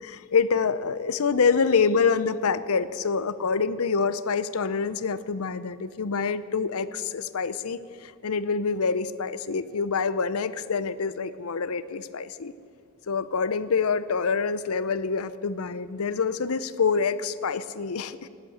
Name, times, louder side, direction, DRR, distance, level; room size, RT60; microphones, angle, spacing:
voice 1, 0.0-12.5 13.1-18.3, left 5 dB, 70° left, 15 dB, 0.6 m, -26 dB
19.0 x 8.2 x 8.6 m, 2.3 s
head